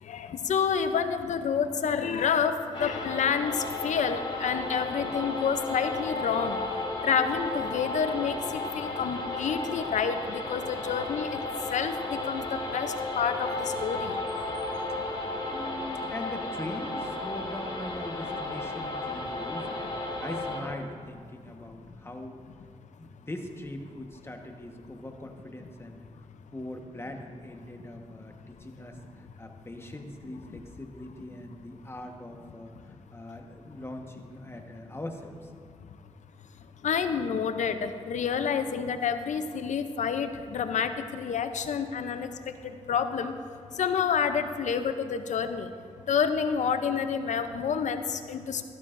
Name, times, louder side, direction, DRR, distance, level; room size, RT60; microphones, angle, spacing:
voice 1, 0.0-6.6 7.0-11.4 11.7-14.2 36.8-42.3 42.6-43.3 43.7-45.7 46.1-48.6, left 7 dB, 80° left, 9 dB, 0.6 m, -29 dB
sound 1, 2.7-20.6, left 2 dB, 40° left, 2.1 m, -34 dB
voice 2, 15.4-19.8 20.2-22.5 23.0-26.1 26.5-35.5, left 1 dB, 20° left, 3 dB, 1.2 m, -41 dB
12.5 x 12.0 x 2.6 m, 2.1 s
cardioid pair, 55°, 12 cm